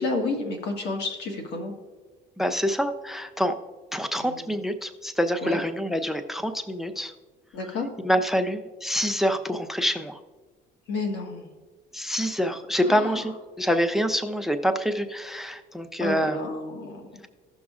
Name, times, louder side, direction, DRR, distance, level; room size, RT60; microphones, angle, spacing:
voice 1, 0.0-1.7 4.2-4.6 5.4-5.6 7.5-7.9 10.9-11.5 12.8-13.2 16.0-17.2, left 3 dB, 80° left, 3 dB, 1.6 m, -31 dB
voice 2, 2.4-3.6 3.9-7.1 8.0-10.2 11.9-16.4, equal, ahead, 9 dB, 0.5 m, -26 dB
16.0 x 6.1 x 2.4 m, 1.3 s
cardioid pair, 110°, 17 cm